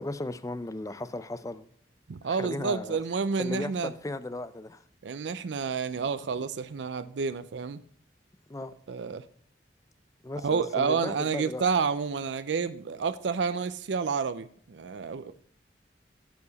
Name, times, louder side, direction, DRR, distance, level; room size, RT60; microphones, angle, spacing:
voice 1, 0.0-1.7 2.3-3.0 3.4-4.8 8.5-8.7 10.2-11.6, left 2 dB, 20° left, 0.5 m, -36 dB
voice 2, 2.1-3.9 5.0-7.8 8.9-9.2 10.4-15.3, right 5 dB, 85° right, 0.5 m, -29 dB
13.5 x 4.8 x 4.0 m
head